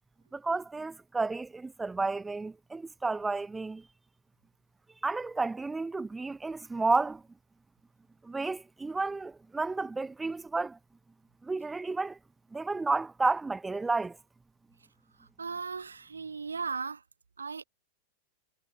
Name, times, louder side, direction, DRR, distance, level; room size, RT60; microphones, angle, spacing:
voice 1, 0.3-3.8 5.0-7.2 8.2-10.8 11.4-12.2 12.5-14.2, right 3 dB, 10° right, 0.7 m, -31 dB
voice 2, 15.2-17.0 17.4-17.6, right 5 dB, 75° right, 0.8 m, -37 dB
figure-of-eight pair, 90°, 0 cm